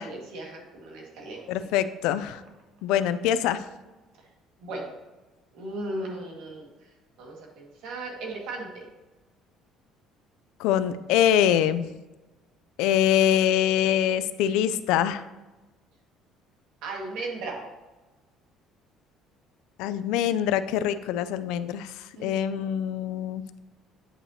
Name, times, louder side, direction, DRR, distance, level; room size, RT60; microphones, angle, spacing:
voice 1, 0.0-1.7 4.2-4.3 4.6-4.9 5.5-6.7 7.2-8.8 16.8-17.6 22.2-22.4, right 2 dB, 75° right, 0 dB, 1.9 m, -36 dB
voice 2, 1.5-2.4 2.8-3.6 10.6-11.8 12.8-15.2 19.8-21.9 22.2-23.4, left 10 dB, 85° left, 13 dB, 0.4 m, -24 dB
8.5 x 5.5 x 2.8 m, 1.1 s
cardioid pair, 150°, 0 cm